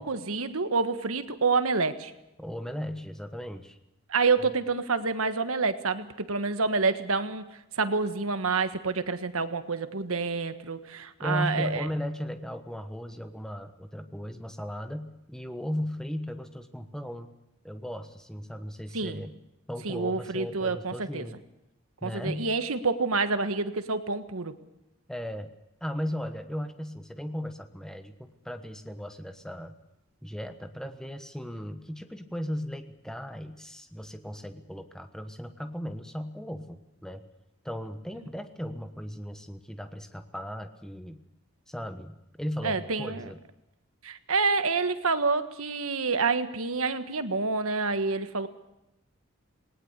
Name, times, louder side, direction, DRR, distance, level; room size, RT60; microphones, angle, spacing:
voice 1, 0.0-2.1 4.1-7.5 7.8-11.9 18.9-19.2 19.8-21.3 22.0-24.5 42.6-43.3 44.0-48.5, right 4 dB, 85° right, 10 dB, 1.5 m, -28 dB
voice 2, 2.4-3.8 11.2-17.3 17.6-19.4 19.7-21.4 22.0-22.5 25.1-25.5 25.8-29.7 30.2-37.2 37.6-41.2 41.7-43.4, equal, 5° left, 8 dB, 1.2 m, -36 dB
19.0 x 19.0 x 8.2 m, 0.89 s
head